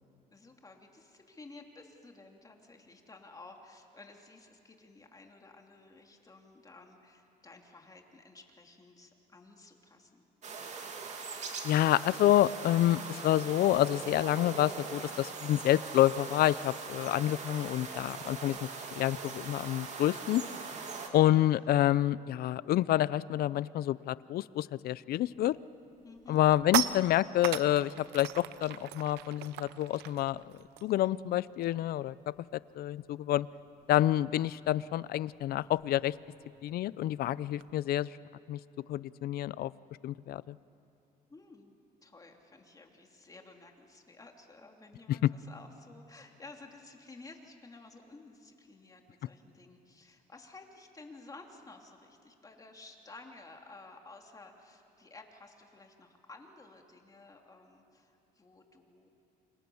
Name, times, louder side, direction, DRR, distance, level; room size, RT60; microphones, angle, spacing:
voice 1, 0.3-10.2 26.0-26.4 41.3-41.7 42.0-59.1, left 3 dB, 20° left, 2 dB, 3.1 m, -53 dB
sound 1, 10.4-21.1, right 4 dB, 45° right, 2.9 m, -41 dB
voice 2, 11.6-20.4 21.1-25.6 26.3-30.5 30.8-32.3 32.7-33.5 33.9-36.1 36.6-38.1 38.5-38.6 38.9-39.7 40.0-40.6, left 13 dB, 65° left, 19 dB, 0.6 m, -28 dB
sound 2, 25.3-25.6 26.0-31.9 32.2-32.4 32.7-37.7, right 13 dB, 90° right, 0.9 m, -39 dB
29.0 x 26.0 x 7.1 m, 2.7 s
cardioid pair, 110°, 17 cm